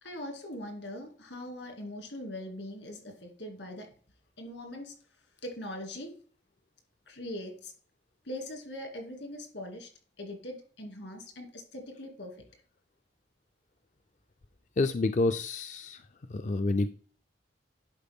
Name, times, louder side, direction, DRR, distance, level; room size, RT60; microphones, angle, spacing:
voice 1, 0.0-3.9 4.4-4.9 5.4-6.1 7.1-7.7 8.2-9.9 10.2-12.4, left 1 dB, 75° left, 3 dB, 2.4 m, -41 dB
voice 2, 14.8-16.0 16.3-16.9, left 2 dB, 40° left, 9 dB, 0.4 m, -28 dB
10.5 x 4.6 x 3.6 m, 0.43 s
head